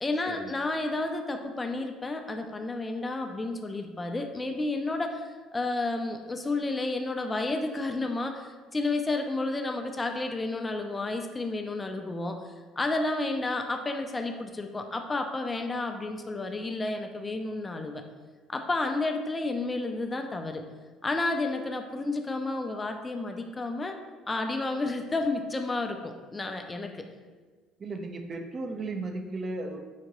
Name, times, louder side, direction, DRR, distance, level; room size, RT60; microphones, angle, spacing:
voice 1, 0.0-12.4 12.8-18.0 18.5-20.6 21.0-24.0 24.3-27.1, left 2 dB, 25° left, 5 dB, 0.4 m, -31 dB
voice 2, 27.8-29.9, right 2 dB, 40° right, 4 dB, 0.4 m, -35 dB
4.8 x 2.2 x 2.9 m, 1.4 s
hypercardioid pair, 65°, 0 cm